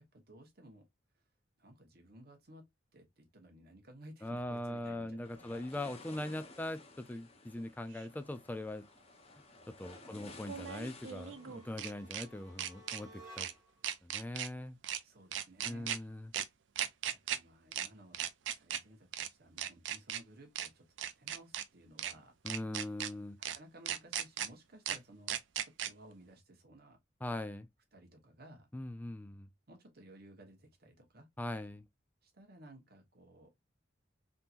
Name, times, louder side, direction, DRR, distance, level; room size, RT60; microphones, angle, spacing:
voice 1, 0.1-0.8 1.6-5.6 6.0-6.1 10.0-10.4 15.0-16.0 16.8-18.2 18.6-22.3 23.4-25.4 25.6-27.0 27.9-28.7 29.7-31.3 32.2-33.5, right 1 dB, 55° right, 1.1 m, -57 dB
voice 2, 4.2-8.9 9.8-13.5 14.0-14.8 15.6-16.3 22.4-23.4 27.2-27.7 28.7-29.5 31.4-31.8, left 1 dB, 10° left, 0.3 m, -41 dB
sound 1, 5.2-13.6, left 3 dB, 35° left, 0.8 m, -56 dB
sound 2, 7.9-8.0 10.4-12.2 12.6-13.0 13.4-13.5 13.8-14.5 14.8-15.0 15.3-16.0 16.3-16.4 16.7-17.4 17.7-17.9 18.1-18.8 19.1-19.3 19.6-20.2 20.5-20.7 21.0-21.6 22.0-22.1 22.5-23.1 23.4-23.6 23.9-24.5 24.8-25.0 25.3-25.9, right 10 dB, 75° right, 0.4 m, -37 dB
sound 3, 11.1-13.8, right 1 dB, 15° right, 1.9 m, -57 dB
3.6 x 2.8 x 2.4 m
head